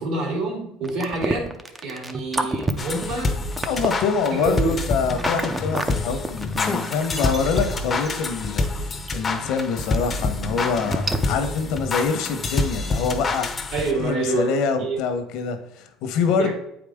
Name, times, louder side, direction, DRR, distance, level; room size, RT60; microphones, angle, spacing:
voice 1, 0.0-1.5 1.8-3.4 4.4-4.8 13.7-15.0 16.4-16.5, right 2 dB, 70° right, -1 dB, 2.9 m, -27 dB
sound 1, 0.8-5.9 6.2-8.1 8.6-8.7 9.1-9.2 9.5-9.6 9.8-10.0 10.5-10.6 10.9-11.2, right 2 dB, 15° right, 0.5 m, -28 dB
sound 2, 2.8-14.1, left 3 dB, 25° left, 0.7 m, -27 dB
voice 2, 3.7-13.5 14.0-16.5, left 5 dB, 70° left, 7 dB, 1.1 m, -25 dB
8.4 x 5.0 x 3.6 m, 0.81 s
cardioid pair, 145°, 0 cm